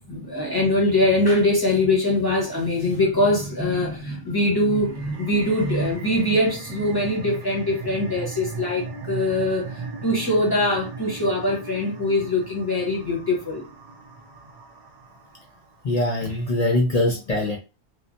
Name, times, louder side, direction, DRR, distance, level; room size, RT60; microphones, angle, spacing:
voice 1, 0.1-13.6, left 1 dB, 20° left, 0.9 m, -22 dB
sound 1, 4.7-15.9, right 4 dB, 55° right, 0.5 m, -38 dB
voice 2, 15.8-17.6, left 2 dB, 55° left, 0.4 m, -22 dB
3.1 x 2.0 x 2.6 m
omnidirectional pair, 1.3 m